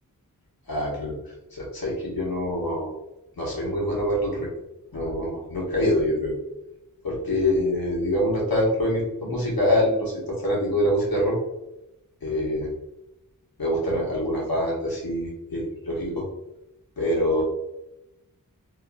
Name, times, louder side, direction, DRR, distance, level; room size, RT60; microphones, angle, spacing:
voice 1, 0.7-1.2 1.5-2.9 3.4-4.5 4.9-6.4 7.0-11.4 12.2-12.7 13.6-16.3 17.0-17.4, left 1 dB, 80° left, -4 dB, 1.2 m, -25 dB
3.5 x 2.4 x 2.2 m, 0.90 s
wide cardioid pair, 55°, 35 cm